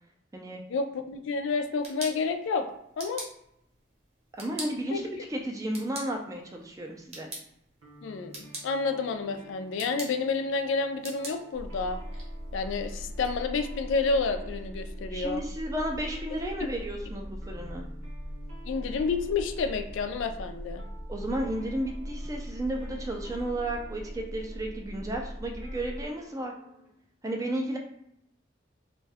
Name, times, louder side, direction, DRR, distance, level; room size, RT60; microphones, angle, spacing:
voice 1, 0.7-2.7 3.0-3.3 4.9-5.0 8.0-12.0 12.5-15.4 18.7-20.8, left 4 dB, 75° left, 7 dB, 0.3 m, -30 dB
sound 1, 1.5-13.3, right 2 dB, 30° right, 0.7 m, -46 dB
voice 2, 4.4-7.3 15.1-17.9 21.1-26.5 27.2-27.8, right 1 dB, 15° right, 2 dB, 0.3 m, -33 dB
sound 2, 7.8-26.9, right 3 dB, 90° right, 0.7 m, -53 dB
sound 3, 11.5-26.1, equal, 20° left, 0.6 m, -40 dB
2.5 x 2.2 x 3.3 m, 0.78 s
head